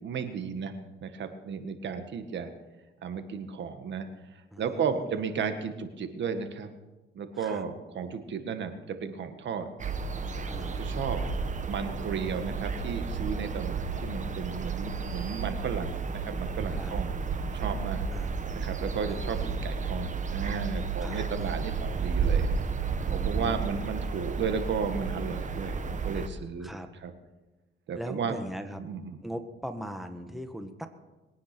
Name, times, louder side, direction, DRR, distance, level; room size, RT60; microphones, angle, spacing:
voice 1, 0.0-2.5 3.0-4.1 4.3-6.7 7.1-9.7 10.6-11.2 11.6-17.1 17.4-18.0 18.5-22.5 23.1-27.1 27.9-28.4 28.8-29.2, right 6 dB, 65° right, 8 dB, 1.7 m, -34 dB
voice 2, 4.5-5.1 7.3-7.6 10.5-10.9 16.7-17.0 18.1-18.3 19.1-19.5 21.0-21.2 23.0-23.8 25.7-25.9 26.6-26.9 27.9-28.8 29.2-30.9, equal, ahead, 7 dB, 1.6 m, -40 dB
sound 1, 9.8-26.3, right 5 dB, 40° right, 1.3 m, -32 dB
22.0 x 9.6 x 6.1 m, 1.1 s
cardioid pair, 90°, 20 cm